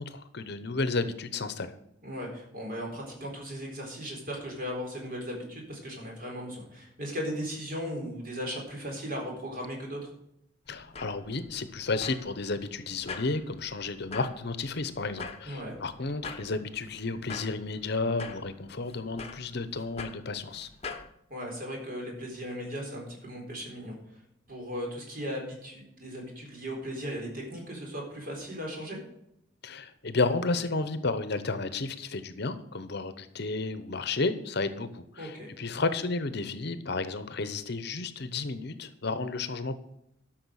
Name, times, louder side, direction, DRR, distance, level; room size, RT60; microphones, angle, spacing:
voice 1, 0.0-1.7 10.7-20.7 29.6-39.8, left 3 dB, 55° left, 12 dB, 0.9 m, -32 dB
voice 2, 2.0-10.0 15.5-15.8 21.3-24.2 24.5-29.0 35.2-35.5, equal, 45° right, 0 dB, 4.2 m, -37 dB
sound 1, 10.7-21.1, left 4 dB, 30° left, 1.0 m, -45 dB
12.5 x 6.3 x 6.4 m, 0.79 s
head